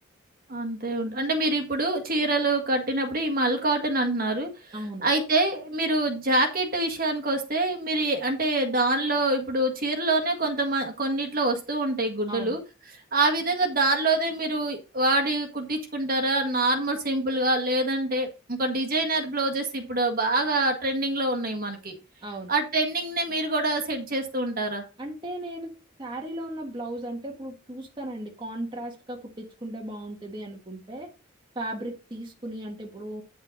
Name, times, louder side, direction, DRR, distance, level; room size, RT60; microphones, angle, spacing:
voice 1, 0.5-12.6 13.1-21.9 22.5-24.8, right 2 dB, 45° right, 1.6 m, -25 dB
voice 2, 4.7-5.0 12.3-12.6 22.2-22.5 25.0-25.7 26.0-31.1 31.5-33.2, right 1 dB, 25° right, 1.4 m, -36 dB
9.5 x 5.5 x 3.9 m
head